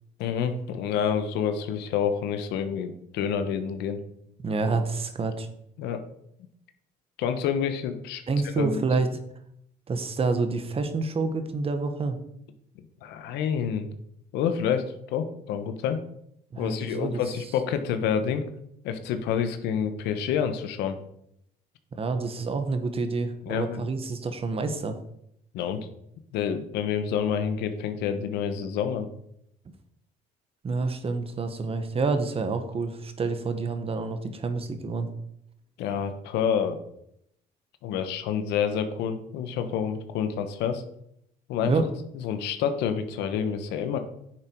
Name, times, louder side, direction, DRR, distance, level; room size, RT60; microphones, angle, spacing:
voice 1, 0.2-4.0 5.8-6.0 7.2-8.2 8.6-8.8 13.0-13.9 14.3-16.0 16.6-18.4 18.8-21.0 23.4-23.8 25.5-25.9 26.3-29.1 35.8-36.8 37.8-40.8 41.5-41.7 42.1-44.0, left 7 dB, 90° left, 8 dB, 1.3 m, -28 dB
voice 2, 4.4-5.5 8.3-9.1 9.9-12.2 16.5-17.2 22.0-25.0 30.6-35.1 41.7-41.9, right 4 dB, 35° right, 8 dB, 1.4 m, -28 dB
9.6 x 7.1 x 4.8 m, 0.73 s
cardioid pair, 110°, 17 cm